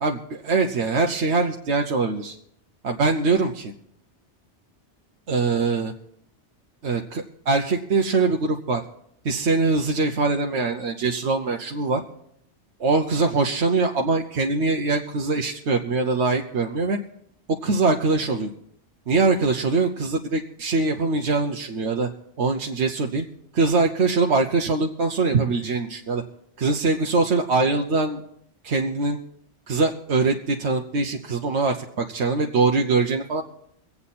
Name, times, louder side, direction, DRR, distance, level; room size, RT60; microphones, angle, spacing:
voice 1, 0.0-2.4 2.8-3.6 5.3-5.9 6.8-8.8 9.2-12.0 12.8-17.0 17.5-18.5 19.1-22.1 22.4-23.2 23.5-26.2 26.6-28.2 28.6-29.2 29.7-33.4, right 3 dB, 75° right, 2 dB, 1.2 m, -23 dB
24.0 x 8.5 x 4.2 m, 0.72 s
omnidirectional pair, 1.2 m